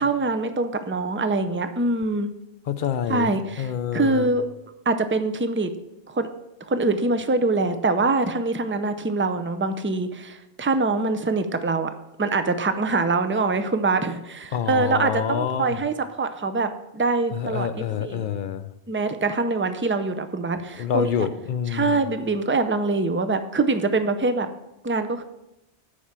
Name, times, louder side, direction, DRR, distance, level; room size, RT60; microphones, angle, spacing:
voice 1, 0.0-2.3 3.1-4.5 4.9-5.7 6.1-6.3 6.7-11.9 12.2-18.2 18.9-21.3 21.7-24.5 24.8-25.2, right 3 dB, 20° right, 9 dB, 0.3 m, -24 dB
voice 2, 2.7-4.3 14.5-15.8 17.3-18.7 20.8-22.0, left 8 dB, 60° left, 12 dB, 0.6 m, -27 dB
9.9 x 4.6 x 7.4 m, 0.92 s
omnidirectional pair, 1.1 m